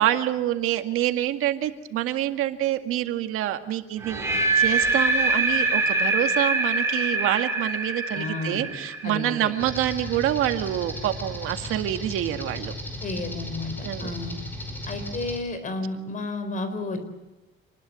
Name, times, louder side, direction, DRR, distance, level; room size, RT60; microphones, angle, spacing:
voice 1, 0.0-4.3 4.6-12.7 13.8-14.1, right 12 dB, 90° right, 7 dB, 2.1 m, -26 dB
sound 1, 4.0-10.0, right 3 dB, 10° right, 5.2 m, -24 dB
voice 2, 8.1-8.7 9.0-9.5 13.0-14.3 14.9-17.0, left 2 dB, 40° left, 9 dB, 4.6 m, -32 dB
sound 2, 9.6-15.4, left 1 dB, 10° left, 5.4 m, -36 dB
28.0 x 20.5 x 7.7 m, 1.0 s
cardioid pair, 155°, 21 cm